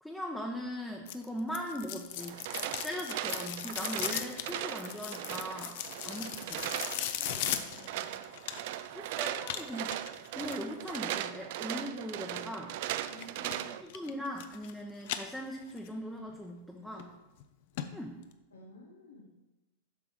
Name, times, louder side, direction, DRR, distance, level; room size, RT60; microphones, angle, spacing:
voice 1, 0.0-2.4 2.8-5.7 6.0-6.7 8.9-10.0 10.3-12.7 13.8-17.1 17.9-18.2, equal, 5° left, -1 dB, 0.8 m, -39 dB
sound 1, 1.1-8.9 9.4-11.2 13.1-13.6 13.9-14.7 15.0-15.9 16.3-16.4 17.0-17.1 17.4-17.5 17.8-17.9 18.2-18.3, left 11 dB, 60° left, 0.6 m, -38 dB
sound 2, 2.2-13.8, right 12 dB, 60° right, 0.4 m, -38 dB
voice 2, 6.1-6.4 7.2-8.1 13.1-13.9 16.8-17.1 18.5-19.3, left 2 dB, 85° left, 2 dB, 1.1 m, -52 dB
8.0 x 5.7 x 3.7 m, 1.0 s
hypercardioid pair, 105°, 0 cm